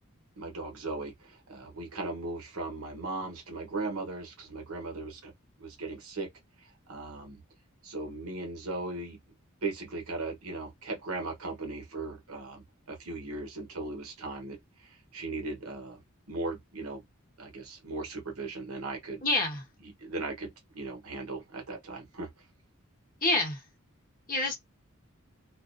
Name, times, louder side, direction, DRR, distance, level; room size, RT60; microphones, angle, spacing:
voice 1, 0.4-5.3 5.6-6.3 6.6-7.4 7.8-9.2 9.6-16.0 16.3-17.0 17.4-19.2 19.8-22.3 24.4-24.5, right 3 dB, 85° right, 0.9 m, -38 dB
voice 2, 19.2-19.6 23.2-23.6 24.3-24.5, left 2 dB, 40° left, 1.1 m, -27 dB
2.4 x 2.1 x 2.4 m
head